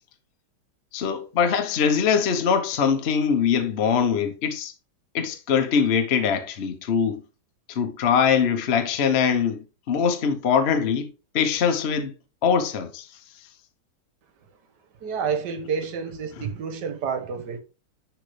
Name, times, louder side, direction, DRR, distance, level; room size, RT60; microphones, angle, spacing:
voice 1, 0.9-4.7 5.1-7.2 7.7-12.1 12.4-13.1, left 7 dB, 60° left, 0.6 m, -22 dB
voice 2, 15.0-17.6, right 6 dB, 60° right, 1.4 m, -29 dB
10.0 x 3.5 x 3.2 m
omnidirectional pair, 2.3 m